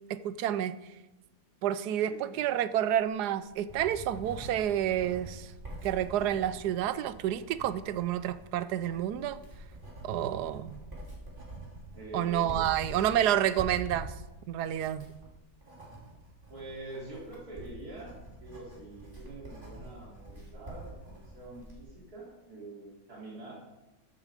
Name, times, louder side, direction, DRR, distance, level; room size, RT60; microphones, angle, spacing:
voice 1, 0.1-0.7 1.6-5.5 5.8-9.4 10.0-10.8 12.1-14.1 14.5-15.0, right 11 dB, 85° right, 1.2 m, -29 dB
voice 2, 2.1-2.4 11.9-12.6 16.5-23.5, right 2 dB, 70° right, 3.8 m, -45 dB
Writing, 3.2-21.8, right 1 dB, 30° right, 3.4 m, -46 dB
14.0 x 8.6 x 4.9 m
omnidirectional pair, 1.7 m